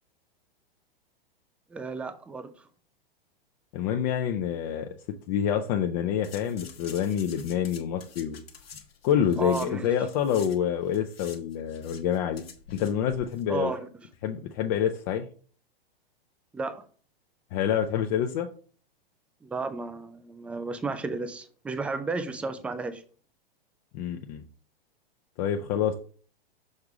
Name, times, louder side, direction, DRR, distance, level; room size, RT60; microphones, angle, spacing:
voice 1, 1.7-2.5 9.4-9.9 13.5-13.9 16.5-16.8 19.4-23.0, right 3 dB, 5° right, 0.3 m, -33 dB
voice 2, 3.7-4.9 5.3-8.4 9.0-12.4 12.7-13.7 14.2-15.3 17.5-18.5 23.9-24.4 25.4-25.9, left 9 dB, 40° left, 0.7 m, -27 dB
sound 1, 6.2-10.6 10.8-13.4 13.7-13.8, left 7 dB, 80° left, 1.2 m, -48 dB
6.6 x 3.5 x 4.8 m
hypercardioid pair, 115°, 29 cm